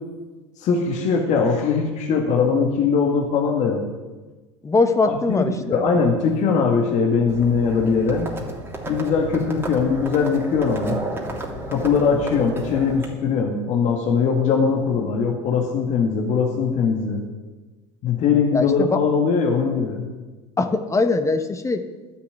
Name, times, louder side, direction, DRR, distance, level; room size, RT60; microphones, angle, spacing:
voice 1, 0.6-3.9 5.1-8.3 8.9-11.0 11.7-17.2 18.0-20.0, left 5 dB, 50° left, 1 dB, 2.0 m, -21 dB
voice 2, 4.6-5.8 18.5-19.0 20.6-21.8, left 3 dB, 20° left, 8 dB, 1.2 m, -21 dB
Livestock farm animals working animals, 7.3-13.1, right 1 dB, 15° right, 3.0 m, -32 dB
11.5 x 6.8 x 9.5 m, 1.2 s
hypercardioid pair, 80°, 15 cm